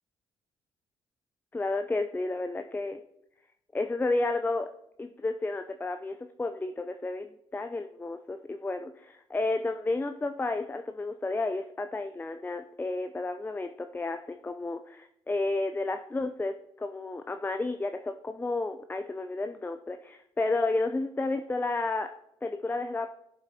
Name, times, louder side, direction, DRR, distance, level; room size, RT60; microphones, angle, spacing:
voice 1, 1.5-3.0 3.7-4.7 5.0-22.1 22.4-23.1, left 2 dB, 15° left, 7 dB, 0.5 m, -32 dB
14.5 x 7.8 x 2.8 m, 0.81 s
hypercardioid pair, 45°, 14 cm